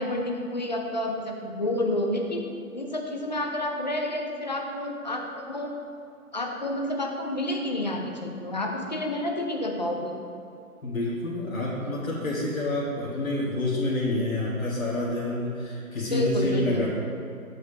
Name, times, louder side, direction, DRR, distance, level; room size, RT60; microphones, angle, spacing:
voice 1, 0.0-5.7 6.3-10.1 16.1-16.8, left 1 dB, 30° left, 1 dB, 0.5 m, -29 dB
voice 2, 10.8-16.9, left 1 dB, 70° left, -7 dB, 1.8 m, -28 dB
6.9 x 5.0 x 5.0 m, 2.4 s
figure-of-eight pair, 160°, 43 cm